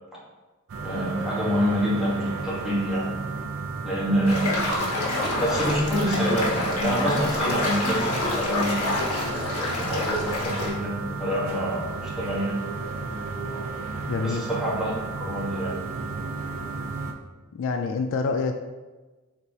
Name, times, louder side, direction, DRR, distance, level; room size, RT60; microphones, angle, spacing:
sound 1, 0.7-17.1, right 4 dB, 65° right, 0.5 m, -33 dB
voice 1, 0.8-3.1 3.8-4.9 5.4-8.8 9.8-12.6 14.2-15.0 15.3-15.8, equal, ahead, -7 dB, 1.2 m, -26 dB
sound 2, 4.2-10.7, left 2 dB, 75° left, 1.4 m, -27 dB
voice 2, 14.1-14.5 17.5-18.5, left 4 dB, 60° left, 5 dB, 0.3 m, -26 dB
4.5 x 4.0 x 2.7 m, 1.2 s
head